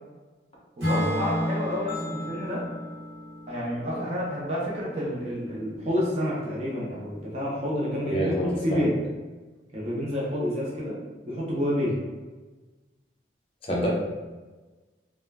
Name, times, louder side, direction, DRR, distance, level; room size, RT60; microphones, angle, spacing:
voice 1, 0.8-2.7 3.5-9.0 9.7-11.0 11.2-12.0, equal, 35° right, -6 dB, 0.6 m, -29 dB
Acoustic guitar / Strum, 0.8-5.0, equal, 80° right, 1.1 m, -32 dB
sound 1, 1.9-4.2, left 5 dB, 85° left, 0.4 m, -44 dB
voice 2, 8.1-8.9 13.6-13.9, equal, 30° left, -3 dB, 0.6 m, -27 dB
2.3 x 2.1 x 3.3 m, 1.3 s
head